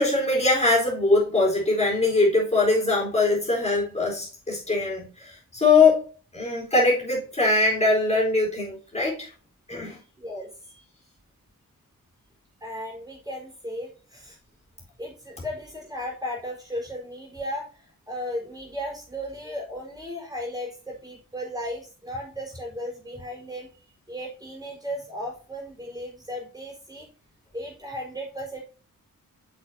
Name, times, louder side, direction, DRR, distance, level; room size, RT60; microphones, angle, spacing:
voice 1, 0.0-9.3 9.7-10.0, left 3 dB, 20° left, 4.1 m, -22 dB
voice 2, 10.2-10.8 12.6-14.4 15.0-23.7 24.1-27.1 27.5-28.6, equal, 10° right, 4.3 m, -35 dB
7.8 x 6.8 x 2.7 m
wide cardioid pair, 140°, 34 cm